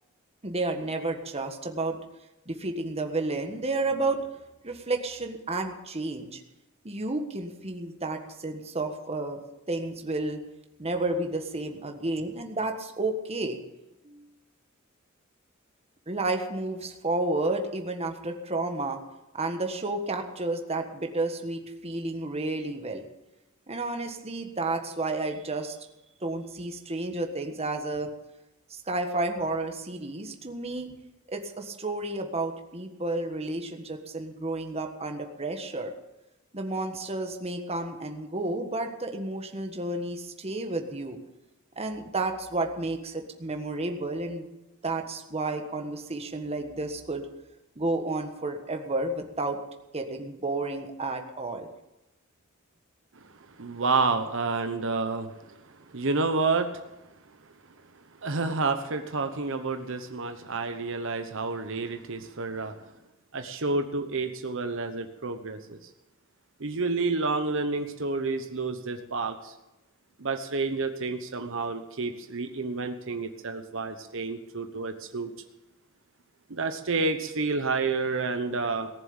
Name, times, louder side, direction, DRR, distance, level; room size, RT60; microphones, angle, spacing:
voice 1, 0.4-2.0 2.5-4.4 4.6-6.4 6.8-9.4 9.7-10.4 10.8-13.6 14.0-14.2 16.1-19.0 19.3-23.1 23.7-25.8 26.2-28.1 28.7-30.9 31.3-35.9 36.5-41.2 41.8-44.5 44.8-47.3 47.8-49.6 49.9-51.7, right 2 dB, 30° right, 4 dB, 1.5 m, -31 dB
voice 2, 53.1-56.9 58.2-62.7 63.3-65.9 66.6-69.5 70.2-75.3 76.5-78.9, right 3 dB, 65° right, 6 dB, 1.0 m, -29 dB
18.5 x 7.3 x 8.9 m, 0.98 s
head